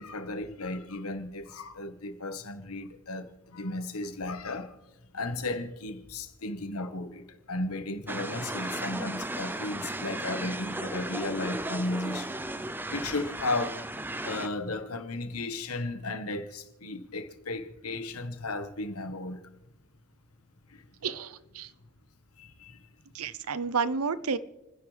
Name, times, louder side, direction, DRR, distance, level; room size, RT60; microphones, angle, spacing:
voice 1, 0.0-4.7 5.1-12.4 12.9-13.8 14.2-19.4 20.7-20.8 22.4-22.8, left 2 dB, 85° left, 1.4 m, -35 dB
sound 1, 8.1-14.5, right 1 dB, 10° right, 0.5 m, -35 dB
voice 2, 21.0-21.7 23.1-24.4, right 5 dB, 85° right, 0.7 m, -30 dB
29.5 x 10.0 x 3.4 m
head